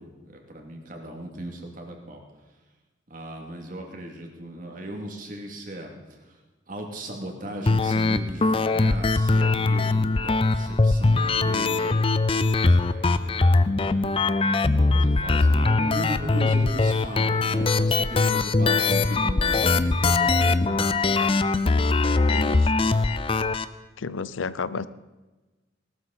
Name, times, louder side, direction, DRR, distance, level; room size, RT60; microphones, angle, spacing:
voice 1, 0.0-2.2 3.1-6.4 6.7-12.1 12.6-14.2 14.7-20.9 22.7-22.8, right 1 dB, 45° right, 2 dB, 2.6 m, -37 dB
sound 1, 7.7-23.6, left 3 dB, 30° left, 0.5 m, -21 dB
voice 2, 22.3-22.7 24.0-24.9, left 4 dB, 90° left, 16 dB, 0.6 m, -32 dB
18.5 x 13.0 x 4.2 m, 1.2 s
head